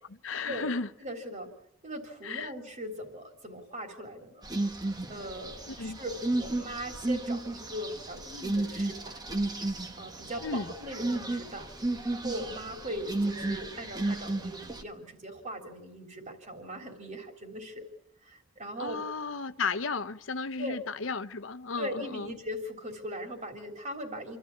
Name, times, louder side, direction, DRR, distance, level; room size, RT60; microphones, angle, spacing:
voice 1, 0.1-0.9 2.2-2.5 5.7-6.0 10.4-10.7 18.8-22.3, left 4 dB, 70° left, 12 dB, 0.9 m, -34 dB
voice 2, 1.0-1.5 1.8-4.4 5.1-9.2 9.9-11.7 12.1-17.9 18.2-19.0 20.6-20.8 21.8-24.4, equal, 40° right, 3 dB, 3.7 m, -39 dB
sound 1, 4.4-14.8, right 2 dB, 20° right, 1.4 m, -33 dB
28.0 x 13.5 x 8.5 m, 0.82 s
head